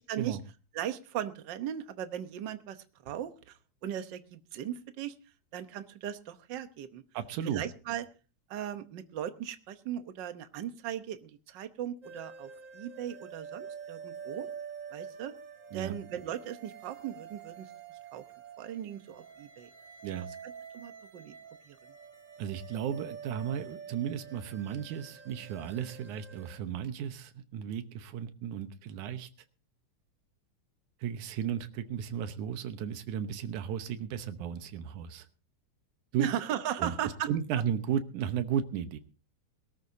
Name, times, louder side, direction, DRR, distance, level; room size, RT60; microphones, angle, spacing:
voice 1, 0.7-2.8 3.0-5.1 5.5-7.0 7.4-8.0 8.5-14.5 14.9-15.3 15.7-17.7 18.1-18.2 18.6-19.7 20.4-21.3 21.7-21.8 36.2-37.3, right 10 dB, 75° right, 9 dB, 1.0 m, -37 dB
voice 2, 7.1-7.6 15.7-16.0 20.0-20.3 22.4-29.3 31.0-35.3 36.1-36.3 36.8-37.0 37.3-39.0, right 9 dB, 90° right, 10 dB, 2.5 m, -34 dB
sound 1, 12.0-26.6, right 7 dB, 40° right, 1.2 m, -47 dB
22.0 x 13.0 x 2.7 m, 0.33 s
omnidirectional pair, 3.4 m